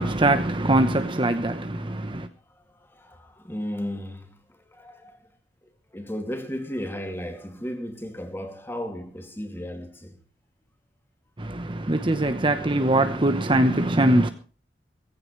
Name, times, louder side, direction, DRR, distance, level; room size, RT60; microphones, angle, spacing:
voice 1, 0.0-2.3 11.4-14.3, right 1 dB, 30° right, 1.0 m, -22 dB
voice 2, 1.5-2.2 2.8-4.4 4.7-5.2 5.9-10.2, equal, 15° left, 2.5 m, -35 dB
17.5 x 15.5 x 3.2 m
head